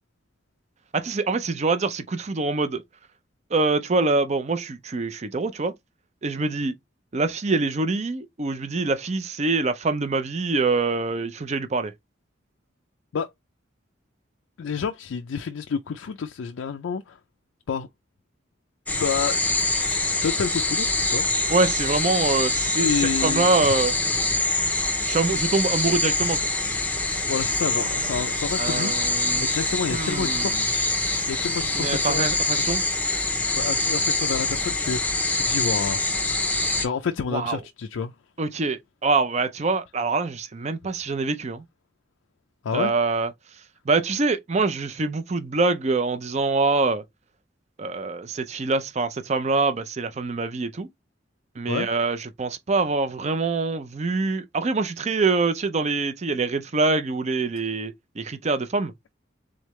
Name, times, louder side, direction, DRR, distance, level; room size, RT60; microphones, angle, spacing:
voice 1, 0.9-2.8 3.5-5.7 6.2-6.7 7.1-11.9 21.5-23.9 25.0-26.4 28.6-29.5 29.9-30.6 31.8-32.8 37.3-37.6 38.4-41.6 42.7-43.3 43.9-47.0 47.8-50.9 51.6-58.9, right 3 dB, 35° right, 0.5 m, -25 dB
voice 2, 14.6-17.2 17.7-17.9 18.9-21.3 22.8-23.5 27.2-30.9 31.3-32.6 33.6-36.0 36.8-38.1 42.6-42.9 51.7-51.9, left 6 dB, 90° left, 0.4 m, -29 dB
sound 1, 18.9-36.8, left 2 dB, 10° left, 0.6 m, -25 dB
3.7 x 3.2 x 3.1 m
head